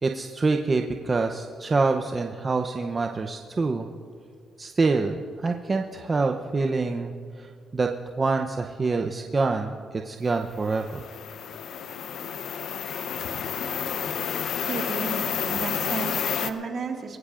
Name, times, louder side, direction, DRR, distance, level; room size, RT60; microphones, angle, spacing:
voice 1, 0.0-3.9 4.6-7.9 8.2-11.0, right 3 dB, 30° right, 3 dB, 0.7 m, -26 dB
sound 1, 10.6-16.5, left 7 dB, 70° left, 0.7 m, -30 dB
voice 2, 14.7-17.2, right 5 dB, 55° right, 2 dB, 1.9 m, -33 dB
23.5 x 16.0 x 2.5 m, 2.1 s
cardioid pair, 90°, 0 cm